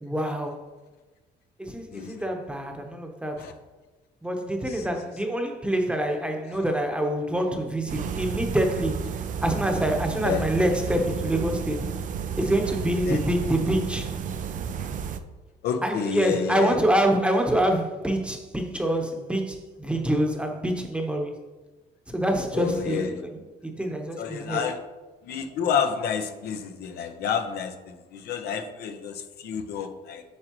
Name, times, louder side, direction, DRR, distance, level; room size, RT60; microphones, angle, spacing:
voice 1, 0.0-0.6 1.6-3.5 4.2-9.1 9.4-11.9 12.4-14.1 15.8-21.4 22.1-24.6, right 1 dB, 5° right, 1.0 m, -26 dB
voice 2, 1.9-2.2 3.4-3.5 4.7-4.9 10.2-10.4 13.0-13.2 15.6-16.8 22.5-23.2 24.2-24.8 25.2-30.2, left 7 dB, 70° left, 0.8 m, -29 dB
sound 1, 7.9-15.2, right 7 dB, 50° right, 0.5 m, -32 dB
8.3 x 6.4 x 3.0 m
cardioid pair, 110°, 17 cm